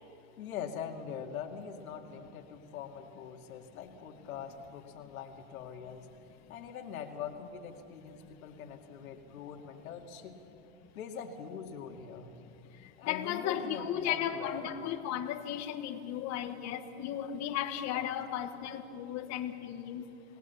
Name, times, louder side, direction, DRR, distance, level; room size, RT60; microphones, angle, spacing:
voice 1, 0.4-6.1 6.5-10.4 11.0-12.3 13.0-14.7 17.9-18.1, left 7 dB, 85° left, 3 dB, 2.4 m, -43 dB
voice 2, 12.8-20.1, left 10 dB, 40° left, 5 dB, 1.5 m, -35 dB
27.0 x 18.5 x 7.1 m, 2.7 s
supercardioid pair, 125°, 41 cm